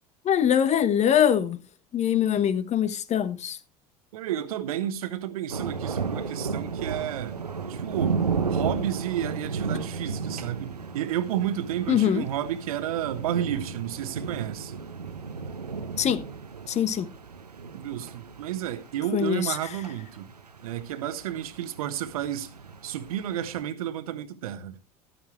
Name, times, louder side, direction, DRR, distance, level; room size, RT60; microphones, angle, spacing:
voice 1, 0.2-1.6 1.9-3.6 11.9-12.2 16.0-16.2 16.7-17.1 19.1-19.6, left 9 dB, 35° left, 1.2 m, -23 dB
voice 2, 4.1-7.4 7.7-8.2 8.5-14.8 17.7-20.3 20.6-22.5 22.8-24.8, right 11 dB, 70° right, 1.3 m, -31 dB
sound 1, 5.5-23.6, right 5 dB, 85° right, 0.9 m, -34 dB
13.0 x 11.5 x 3.2 m
figure-of-eight pair, 70°, 20 cm